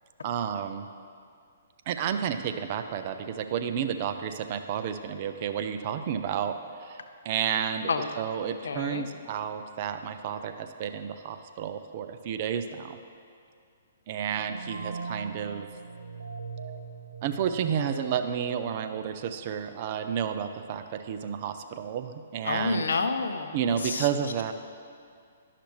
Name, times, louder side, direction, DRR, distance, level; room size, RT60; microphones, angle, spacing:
voice 1, 0.2-0.9 1.9-6.5 6.8-7.0 7.2-7.9 8.2-13.0 14.1-15.7 17.2-22.8 23.5-24.5, right 8 dB, 40° right, 8 dB, 0.4 m, -31 dB
voice 2, 8.6-9.1 22.4-24.1, left 4 dB, 65° left, 7 dB, 0.6 m, -29 dB
sound 1, 14.3-19.7, right 4 dB, 80° right, 0.6 m, -40 dB
11.5 x 5.8 x 3.1 m, 2.2 s
figure-of-eight pair, 125°, 0 cm